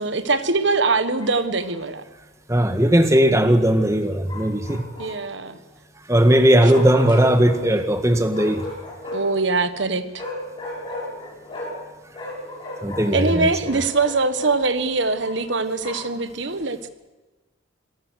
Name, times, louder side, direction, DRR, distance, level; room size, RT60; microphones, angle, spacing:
voice 1, 0.0-2.0 5.0-5.6 9.1-10.2 13.1-16.9, right 3 dB, 65° right, 11 dB, 1.6 m, -22 dB
Bark, 1.2-1.8 4.3-5.4 6.7-7.6 8.3-9.4 10.1-11.9 12.1-14.6 15.2-16.2, left 1 dB, 25° left, 7.5 m, -35 dB
voice 2, 2.5-4.9 6.1-8.6 12.8-13.5, right 1 dB, 15° right, 8 dB, 1.7 m, -17 dB
26.5 x 19.0 x 6.5 m, 1.2 s
head